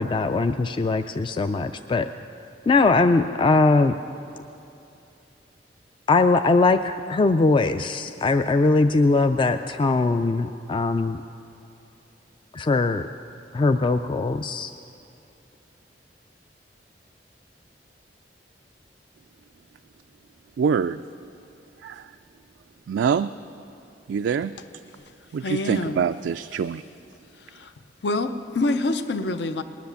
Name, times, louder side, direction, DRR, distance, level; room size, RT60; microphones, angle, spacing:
voice 1, 0.0-2.1 2.7-3.9 6.1-11.2 12.5-13.1 13.5-14.7, left 3 dB, 30° left, 8 dB, 0.3 m, -21 dB
voice 2, 20.6-21.0 21.8-22.1 22.9-23.3 24.1-24.5 25.3-26.8, right 6 dB, 90° right, 8 dB, 0.3 m, -24 dB
voice 3, 25.4-26.0 28.0-29.6, left 2 dB, 70° left, 10 dB, 0.6 m, -25 dB
19.5 x 10.5 x 7.0 m, 2.7 s
head